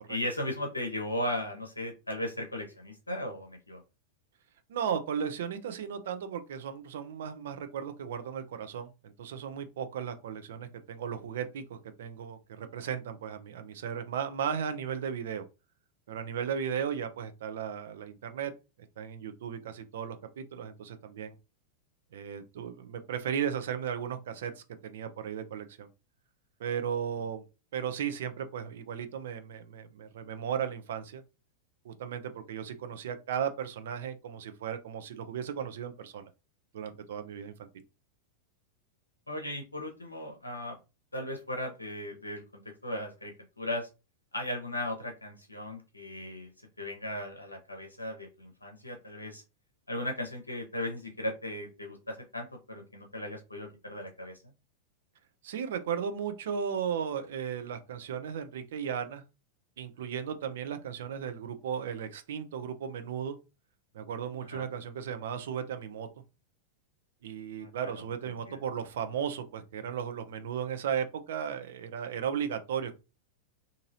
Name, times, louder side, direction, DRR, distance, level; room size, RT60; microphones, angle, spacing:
voice 1, 0.0-3.8 39.3-40.8 41.1-43.9 44.3-46.5 46.8-49.4 49.9-54.4 64.5-64.7 67.6-68.6, left 1 dB, 85° left, 0.6 m, -37 dB
voice 2, 4.7-15.4 16.1-18.5 19.0-21.4 22.1-25.9 26.6-27.4 27.7-31.2 31.8-36.3 36.7-37.7 55.4-59.2 59.8-63.4 63.9-66.1 67.2-72.9, right 8 dB, 65° right, 0.5 m, -35 dB
2.9 x 2.6 x 2.6 m
figure-of-eight pair, 90°, 0 cm